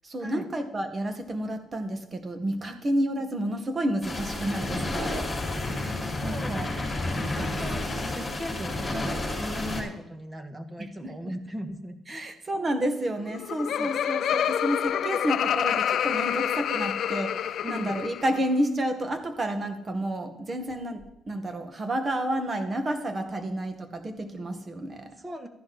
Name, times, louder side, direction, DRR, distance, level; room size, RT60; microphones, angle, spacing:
voice 1, 0.0-5.3 6.2-6.7 7.6-7.7 8.0-8.1 10.8-11.4 12.1-25.2, right 1 dB, 35° right, 7 dB, 1.9 m, -30 dB
sound 1, 4.0-9.8, left 2 dB, 20° left, 6.0 m, -31 dB
voice 2, 6.1-6.6 7.0-12.3 13.8-13.9 17.6-18.0 25.2-25.5, equal, 15° right, 8 dB, 1.7 m, -38 dB
Laughter, 13.2-18.4, left 9 dB, 70° left, 0.5 m, -27 dB
13.5 x 10.5 x 4.3 m, 0.82 s
cardioid pair, 90°, 0 cm